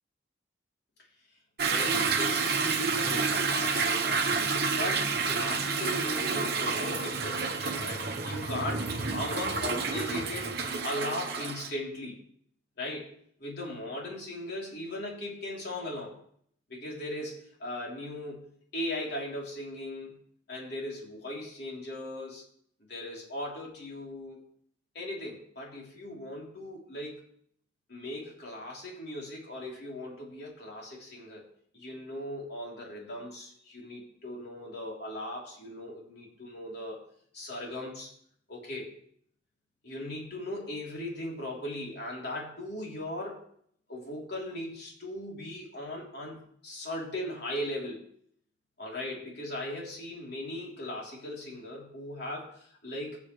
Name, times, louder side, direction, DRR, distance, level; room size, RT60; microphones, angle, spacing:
voice 1, 1.6-4.3 4.7-12.2 12.8-13.1 13.4-16.2 16.7-18.5 18.7-20.1 20.5-22.4 22.9-24.4 25.0-27.2 27.9-31.4 31.7-37.0 37.3-38.1 38.5-38.9 39.8-43.4 43.9-48.0 48.8-53.2, left 1 dB, 55° left, -3 dB, 3.4 m, -38 dB
Toilet flush / Drip / Trickle dribble, 1.6-11.7, right 4 dB, 50° right, 1.0 m, -29 dB
17.5 x 7.2 x 3.2 m, 0.64 s
head